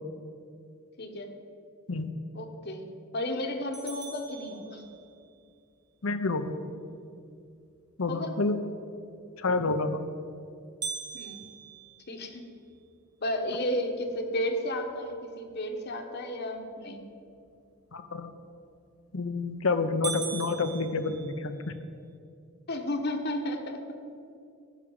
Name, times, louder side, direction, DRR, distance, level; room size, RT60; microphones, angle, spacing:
voice 1, 1.0-1.3 2.3-2.9 3.1-4.8 8.1-8.3 11.1-11.4 12.1-12.4 13.2-17.0 22.7-24.0, left 1 dB, 50° left, 5 dB, 1.2 m, -33 dB
sound 1, 3.7-5.3 10.8-13.0 13.5-13.6 14.1-14.2 14.8-15.2 18.8-19.2 19.6-19.7 20.0-21.8, right 6 dB, 20° right, 1.3 m, -40 dB
voice 2, 6.0-6.6 8.0-8.6 9.4-10.1 17.9-18.3 19.1-21.8, left 3 dB, 75° left, 9 dB, 0.8 m, -29 dB
13.5 x 6.2 x 7.2 m, 2.5 s
head